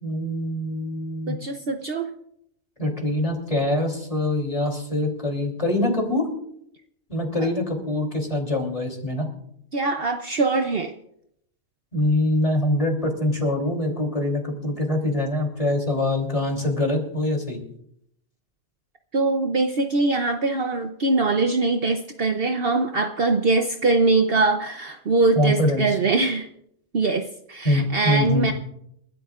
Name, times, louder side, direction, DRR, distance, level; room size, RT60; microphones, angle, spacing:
voice 1, 0.0-1.4 2.8-6.3 7.1-9.3 11.9-17.6 25.3-26.0 27.6-28.5, left 1 dB, 25° left, 2 dB, 3.1 m, -24 dB
voice 2, 1.3-2.1 9.7-10.9 19.1-26.5 26.9-28.5, right 3 dB, 55° right, 6 dB, 0.9 m, -22 dB
29.0 x 13.0 x 2.5 m, 0.72 s
omnidirectional pair, 1.3 m